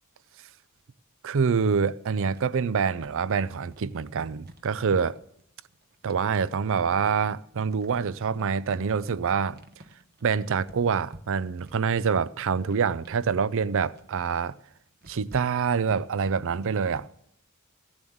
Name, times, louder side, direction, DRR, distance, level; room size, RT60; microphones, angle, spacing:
voice 1, 1.2-5.2 6.0-9.6 10.2-14.5 15.1-17.1, right 6 dB, 60° right, 0.5 m, -26 dB
sound 1, 2.3-17.0, right 1 dB, 45° right, 1.0 m, -53 dB
15.5 x 7.4 x 7.9 m
head